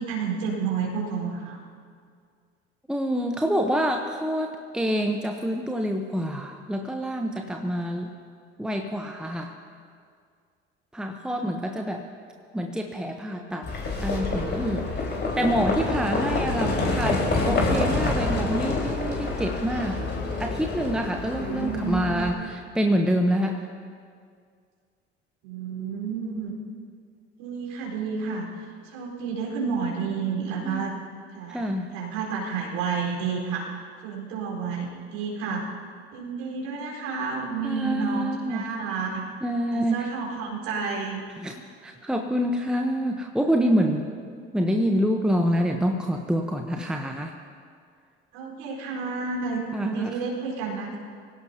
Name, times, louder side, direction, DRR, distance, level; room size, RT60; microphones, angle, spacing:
voice 1, 0.0-1.6 11.3-11.5 16.2-16.5 17.7-17.9 21.4-22.2 25.4-26.5 27.4-28.5 28.8-30.9 31.3-33.7 34.0-35.6 36.1-39.2 39.7-41.2 48.3-51.0, right 5 dB, 60° right, -3 dB, 4.6 m, -30 dB
voice 2, 2.9-8.1 8.6-9.5 10.9-12.0 12.5-13.7 14.0-14.9 15.4-20.0 20.4-23.7 30.6-30.9 31.5-31.9 37.6-38.7 39.4-40.1 41.4-44.1 44.5-47.3 49.7-50.2, equal, ahead, 4 dB, 1.0 m, -26 dB
Livestock farm animals working animals, 13.6-22.3, left 2 dB, 30° left, 4.6 m, -27 dB
25.0 x 16.5 x 2.9 m, 2.2 s
figure-of-eight pair, 55°, 32 cm